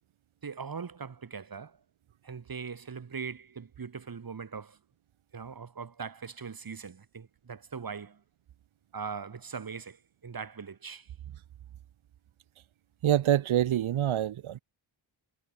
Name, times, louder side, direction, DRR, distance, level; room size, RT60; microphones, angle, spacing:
voice 1, 0.4-1.8 2.2-4.8 5.3-8.2 8.9-10.0 10.2-11.1, right 5 dB, 45° right, 2.8 m, -40 dB
voice 2, 13.0-14.6, right 11 dB, 80° right, 0.9 m, -26 dB
wide cardioid pair, 170°, 47 cm